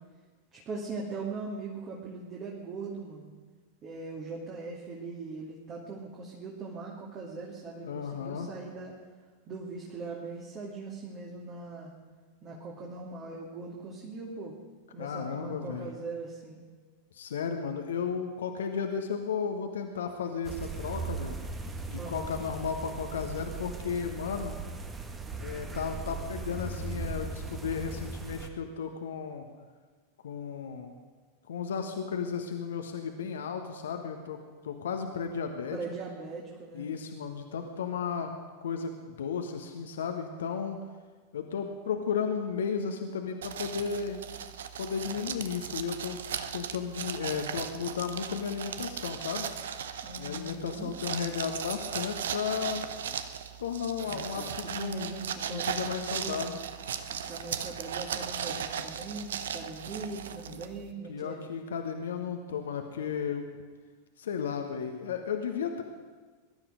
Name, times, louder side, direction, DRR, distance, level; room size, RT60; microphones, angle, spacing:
voice 1, 0.5-3.3 3.8-8.9 9.5-11.9 12.4-14.6 14.9-16.6 22.0-22.4 35.7-36.9 50.0-50.9 54.0-56.4 57.0-61.4, right 3 dB, 30° right, -3 dB, 2.7 m, -40 dB
voice 2, 7.8-8.5 15.0-15.9 17.1-21.4 21.9-24.6 25.4-29.5 30.2-30.9 31.5-35.8 36.7-38.3 38.6-40.8 41.3-44.2 44.8-46.2 46.5-49.4 50.2-52.8 53.6-55.2 55.5-56.6 61.1-63.5 64.2-65.8, left 6 dB, 65° left, 5 dB, 1.4 m, -34 dB
sound 1, 20.4-28.5, right 3 dB, 15° right, 1.4 m, -38 dB
sound 2, 43.4-60.9, right 8 dB, 60° right, 0.8 m, -37 dB
21.0 x 12.0 x 5.1 m, 1.4 s
figure-of-eight pair, 90°, 0 cm